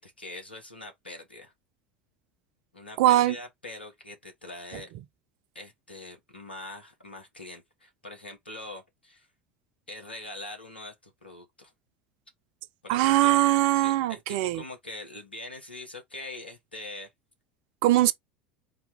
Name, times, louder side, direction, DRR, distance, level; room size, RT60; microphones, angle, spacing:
voice 1, 0.0-1.5 2.7-4.9 5.5-9.3 9.9-11.7 12.8-13.4 13.7-17.1, left 2 dB, 90° left, 1.3 m, -43 dB
voice 2, 3.0-3.4 12.9-14.6 17.8-18.1, right 15 dB, 60° right, 0.5 m, -21 dB
4.0 x 2.8 x 3.4 m
figure-of-eight pair, 75°, 5 cm